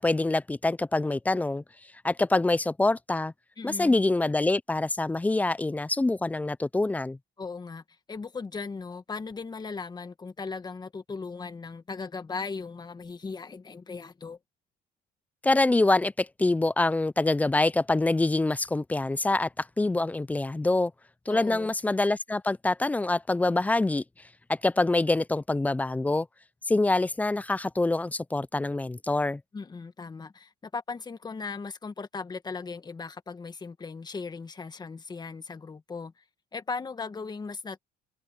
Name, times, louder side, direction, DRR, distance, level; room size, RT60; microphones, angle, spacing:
voice 1, 0.0-1.6 2.0-3.3 3.6-7.2 15.4-20.9 21.3-24.0 24.5-26.3 26.7-29.4, left 2 dB, 10° left, 0.3 m, -25 dB
voice 2, 3.6-4.0 7.4-7.8 8.1-14.4 21.3-21.7 29.5-36.2 36.5-37.8, left 4 dB, 25° left, 1.7 m, -38 dB
cardioid pair, 110°, 17 cm